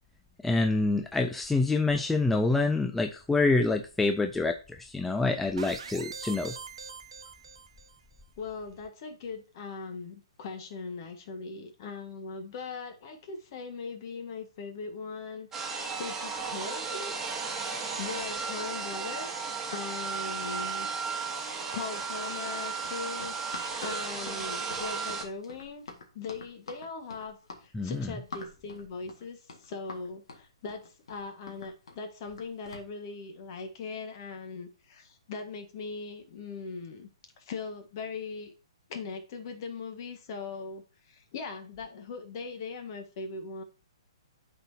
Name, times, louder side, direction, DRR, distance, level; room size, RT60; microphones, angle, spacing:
voice 1, 0.4-6.5 27.7-28.2, left 3 dB, 5° left, 5 dB, 0.4 m, -27 dB
sound 1, 5.6-8.0, right 5 dB, 75° right, 1.0 m, -43 dB
voice 2, 8.4-17.2 17.5-20.9 21.3-25.8 26.1-37.1 37.4-38.5 38.9-43.6, left 4 dB, 45° left, 6 dB, 1.5 m, -40 dB
sound 2, 15.5-25.2, right 5 dB, 15° right, 1.3 m, -34 dB
Run, 22.4-32.9, left 3 dB, 70° left, 1.7 m, -47 dB
12.0 x 4.1 x 2.7 m, 0.33 s
hypercardioid pair, 135°, 3 cm